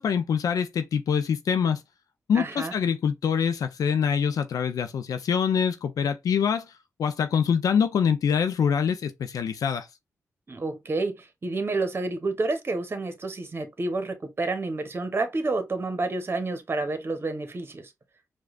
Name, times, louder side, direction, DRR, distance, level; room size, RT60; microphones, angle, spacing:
voice 1, 0.0-1.8 2.3-6.7 7.0-9.9, left 7 dB, 80° left, 0.4 m, -25 dB
voice 2, 2.3-2.7 10.5-17.9, right 3 dB, 40° right, 0.9 m, -29 dB
4.7 x 2.3 x 2.3 m
cardioid pair, 65°, 6 cm